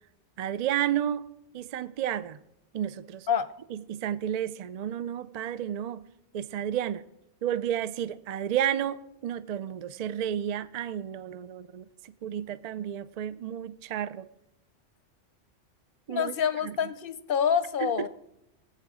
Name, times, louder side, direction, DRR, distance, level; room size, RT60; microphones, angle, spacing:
voice 1, 0.4-1.3 1.5-2.4 2.7-3.3 3.7-6.1 6.3-7.0 7.4-14.3 16.1-16.3 16.6-16.8 17.8-17.9, right 10 dB, 60° right, 0.4 m, -31 dB
voice 2, 16.1-18.1, left 7 dB, 55° left, 0.7 m, -27 dB
19.0 x 8.0 x 4.9 m
omnidirectional pair, 1.2 m